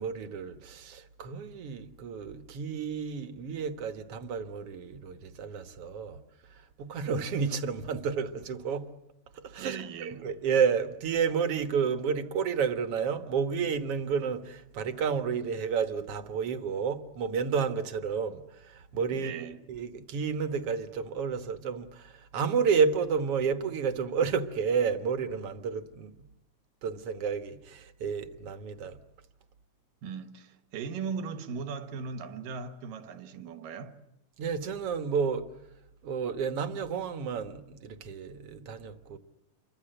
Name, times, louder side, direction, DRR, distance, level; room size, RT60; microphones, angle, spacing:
voice 1, 0.0-6.2 6.5-8.9 9.3-26.1 26.8-29.0 34.4-35.5 36.0-39.2, right 6 dB, 55° right, 1.9 m, -31 dB
voice 2, 9.6-10.3 19.1-19.6 30.0-34.0, right 5 dB, 90° right, 3.2 m, -38 dB
28.5 x 24.0 x 7.9 m
omnidirectional pair, 3.8 m